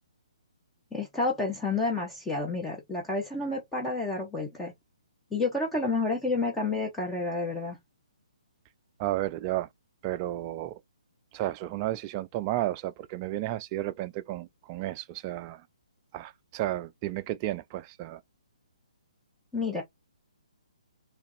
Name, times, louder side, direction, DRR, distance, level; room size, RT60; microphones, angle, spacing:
voice 1, 0.9-4.7 5.3-7.8 19.5-19.8, left 3 dB, 5° left, 1.1 m, -30 dB
voice 2, 9.0-9.7 10.0-10.8 11.3-15.6 16.1-18.2, right 14 dB, 25° right, 0.4 m, -32 dB
3.5 x 3.3 x 3.2 m
hypercardioid pair, 145°, 4 cm